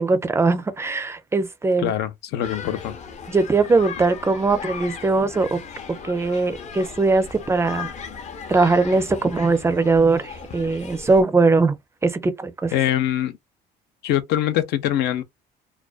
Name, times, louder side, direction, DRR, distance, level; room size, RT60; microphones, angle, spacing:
voice 1, 0.0-1.9 3.3-5.6 6.0-7.9 8.5-11.8 12.0-12.7, right 3 dB, 15° right, 0.4 m, -20 dB
voice 2, 1.8-2.9 12.7-13.3 14.0-15.2, left 11 dB, 80° left, 0.5 m, -23 dB
sound 1, 2.4-11.2, left 5 dB, 45° left, 0.6 m, -37 dB
2.4 x 2.2 x 2.3 m
cardioid pair, 110°, 17 cm